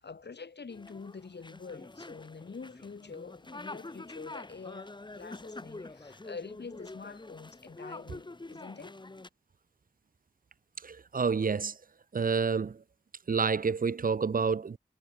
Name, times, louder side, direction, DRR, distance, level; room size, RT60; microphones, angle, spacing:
voice 1, 0.0-9.0, left 4 dB, 75° left, 3.2 m, -46 dB
sound 1, 0.7-9.3, left 2 dB, 25° left, 1.3 m, -46 dB
voice 2, 10.8-11.8 12.1-12.8 13.3-14.8, right 5 dB, 55° right, 0.6 m, -29 dB
wide cardioid pair, 95°, 17 cm